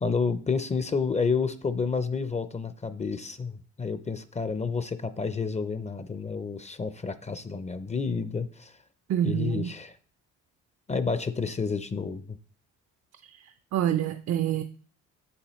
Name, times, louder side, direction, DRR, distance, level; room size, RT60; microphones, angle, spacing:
voice 1, 0.0-8.8 9.2-10.0 10.9-12.4, left 5 dB, 25° left, 12 dB, 0.5 m, -30 dB
voice 2, 9.1-9.7 13.7-14.6, right 11 dB, 60° right, 10 dB, 0.5 m, -26 dB
7.3 x 7.0 x 3.0 m, 0.43 s
cardioid pair, 90°, 30 cm